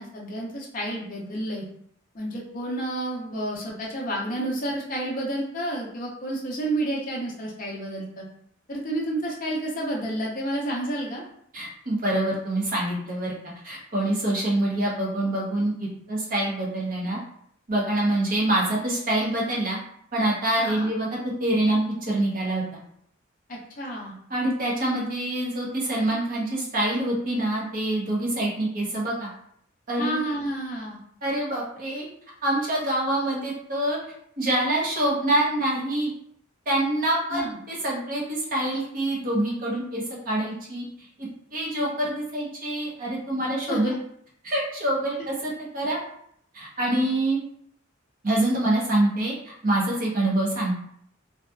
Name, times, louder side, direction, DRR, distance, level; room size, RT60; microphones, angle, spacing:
voice 1, 0.0-1.6 2.1-8.2 8.7-11.2 20.6-20.9 23.5-24.1 30.0-31.0 37.3-37.6 43.7-43.9, right 1 dB, 40° left, -3 dB, 0.6 m, -30 dB
voice 2, 11.5-13.3 13.6-17.2 17.7-19.8 20.1-22.8 24.3-29.3 29.9-30.2 31.2-32.0 32.4-34.0 34.4-36.1 36.7-40.8 41.2-44.0 44.4-46.0 46.5-47.4 48.2-50.7, right 1 dB, 45° right, -4 dB, 0.8 m, -26 dB
2.7 x 2.3 x 2.2 m, 0.67 s
head